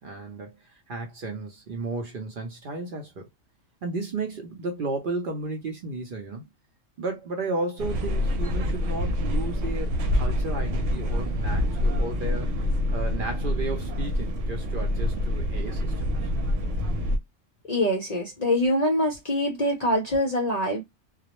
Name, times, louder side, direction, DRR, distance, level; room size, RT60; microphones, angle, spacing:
voice 1, 0.0-3.3 3.8-6.5 7.0-12.6 12.9-15.9, right 3 dB, 55° right, 0.6 m, -33 dB
sound 1, 7.8-17.2, left 1 dB, 85° right, 0.9 m, -26 dB
voice 2, 17.7-20.8, left 1 dB, 50° left, 0.5 m, -24 dB
2.2 x 2.0 x 2.9 m
omnidirectional pair, 1.3 m